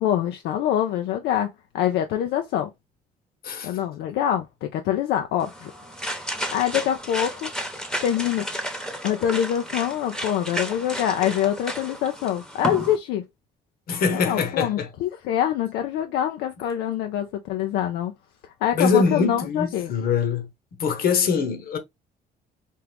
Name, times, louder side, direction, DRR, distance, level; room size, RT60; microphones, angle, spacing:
voice 1, 0.0-2.7 3.6-5.7 6.5-7.5 8.0-8.5 9.0-13.2 14.1-18.1 18.4-19.9, left 10 dB, 85° left, 0.5 m, -25 dB
voice 2, 3.4-3.8 13.9-14.9 18.7-20.5 20.8-21.8, left 5 dB, 60° left, 1.1 m, -23 dB
sound 1, 5.4-13.0, equal, 5° left, 0.9 m, -32 dB
4.5 x 2.4 x 3.3 m
cardioid pair, 110°, 17 cm